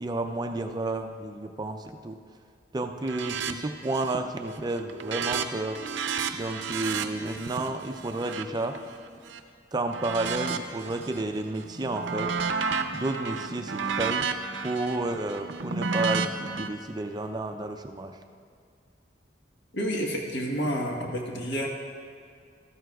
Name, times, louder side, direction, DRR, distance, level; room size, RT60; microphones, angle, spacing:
voice 1, 0.0-2.2 2.7-5.8 6.3-8.8 9.7-12.3 12.9-14.2 14.6-18.2, right 2 dB, 20° right, 5 dB, 0.4 m, -31 dB
sound 1, 3.0-3.5 3.8-4.3 4.6-9.4 9.9-11.2 11.6-16.7, right 5 dB, 85° right, 0.6 m, -32 dB
voice 2, 19.7-21.7, equal, 70° left, 0 dB, 1.3 m, -29 dB
13.5 x 12.5 x 2.3 m, 2.3 s
head